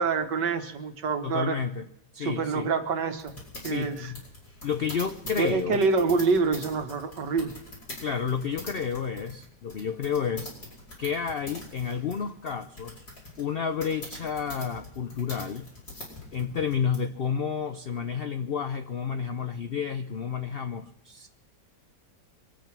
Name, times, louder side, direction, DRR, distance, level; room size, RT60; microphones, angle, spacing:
voice 1, 0.0-1.6 2.2-3.4 3.6-4.1 5.4-7.5, right 4 dB, 80° right, 7 dB, 1.9 m, -26 dB
voice 2, 1.2-1.9 2.1-2.7 3.6-4.2 4.6-5.8 8.0-10.5 11.0-13.0 13.4-15.7 16.3-21.3, left 6 dB, 85° left, 9 dB, 0.5 m, -30 dB
sound 1, 3.2-17.0, left 2 dB, 60° left, 5.8 m, -43 dB
24.0 x 9.0 x 6.0 m, 0.80 s
omnidirectional pair, 1.8 m